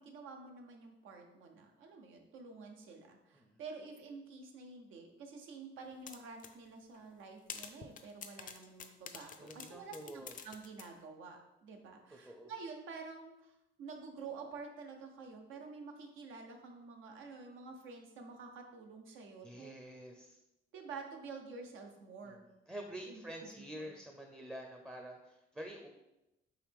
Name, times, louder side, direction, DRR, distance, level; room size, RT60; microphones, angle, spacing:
voice 1, 0.0-13.5 13.8-19.7 20.7-22.5 23.0-23.5 23.8-23.9, right 4 dB, 85° right, 3 dB, 0.7 m, -49 dB
sound 1, 6.1-6.5 6.9-7.0 7.5-10.9, left 7 dB, 45° left, 0.4 m, -47 dB
voice 2, 9.4-10.4 12.1-12.5 19.1-20.4 22.2-25.9, right 1 dB, 10° right, 3 dB, 0.5 m, -48 dB
4.8 x 2.9 x 3.4 m, 0.91 s
cardioid pair, 90°, 20 cm